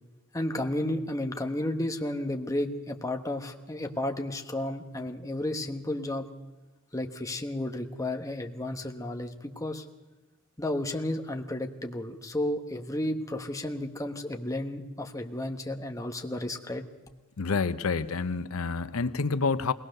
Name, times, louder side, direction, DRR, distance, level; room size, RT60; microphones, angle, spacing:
voice 1, 0.3-6.3 6.9-9.8 10.6-16.9, left 1 dB, 15° left, 4 dB, 1.2 m, -32 dB
voice 2, 17.4-19.7, left 4 dB, 85° left, 13 dB, 0.7 m, -28 dB
21.5 x 19.0 x 6.6 m, 1.2 s
head